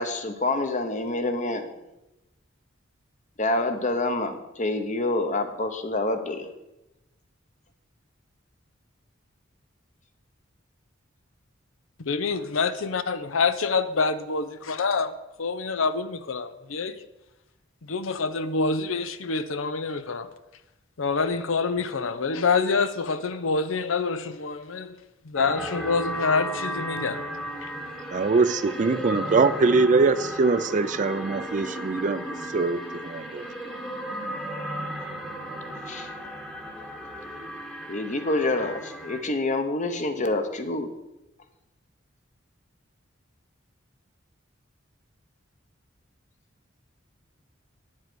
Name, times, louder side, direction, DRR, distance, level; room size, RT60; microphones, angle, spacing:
voice 1, 0.0-1.7 3.4-6.5 35.9-36.1 37.9-40.9, left 2 dB, 40° left, 1.0 m, -27 dB
voice 2, 12.0-15.1 15.4-17.0 17.8-20.3 21.0-25.0 25.2-27.2 27.6-27.7, left 4 dB, 80° left, 0.7 m, -26 dB
sound 1, 25.4-39.2, equal, 5° left, 1.1 m, -35 dB
voice 3, 28.1-32.2 32.5-33.5, right 4 dB, 40° right, 0.4 m, -23 dB
9.6 x 7.5 x 6.2 m
head